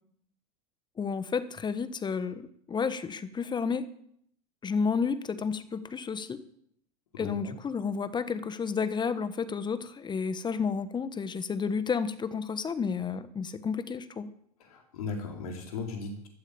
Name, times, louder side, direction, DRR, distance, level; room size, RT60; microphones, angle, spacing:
voice 1, 1.0-3.9 4.6-6.4 7.2-14.3, left 5 dB, 25° left, 13 dB, 1.4 m, -31 dB
voice 2, 7.1-7.5 14.6-16.3, left 4 dB, 70° left, 3 dB, 4.5 m, -37 dB
15.0 x 13.0 x 7.1 m, 0.69 s
hypercardioid pair, 85°, 19 cm